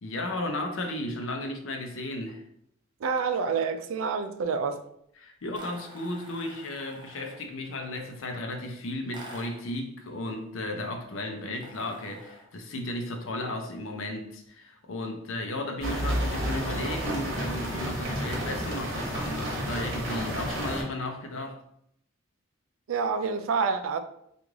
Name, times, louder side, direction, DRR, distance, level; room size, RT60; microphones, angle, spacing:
voice 1, 0.0-2.4 5.2-21.6, left 1 dB, 75° left, 0.6 m, -34 dB
voice 2, 3.0-4.8 22.9-24.0, right 5 dB, 85° right, 0.4 m, -28 dB
spring door stop, 5.5-7.5 9.1-9.7 11.5-12.6, right 1 dB, 25° right, 0.7 m, -47 dB
sound 1, 15.8-20.8, equal, 65° right, 1.1 m, -31 dB
3.2 x 2.5 x 3.5 m
head